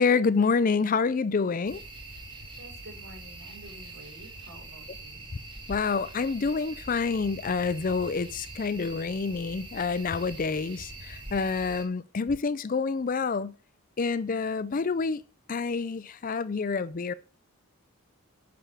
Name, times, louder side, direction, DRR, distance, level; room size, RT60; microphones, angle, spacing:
voice 1, 0.0-1.8 5.7-13.5 14.0-15.2 15.5-17.1, left 4 dB, 40° left, 0.4 m, -27 dB
sound 1, 1.7-11.8, right 2 dB, 25° right, 2.2 m, -44 dB
voice 2, 2.5-5.3, right 1 dB, 60° right, 5.4 m, -49 dB
8.9 x 6.9 x 6.8 m
head